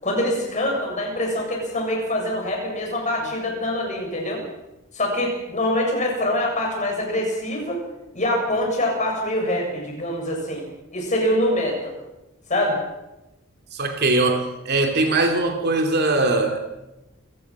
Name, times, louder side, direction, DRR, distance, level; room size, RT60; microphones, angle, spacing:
voice 1, 0.0-4.4 4.9-7.8 8.1-10.6 10.9-12.0 12.5-12.8, left 1 dB, 35° left, 1 dB, 7.3 m, -24 dB
voice 2, 13.7-16.6, right 2 dB, 50° right, 4 dB, 2.8 m, -21 dB
28.0 x 17.0 x 6.1 m, 0.95 s
head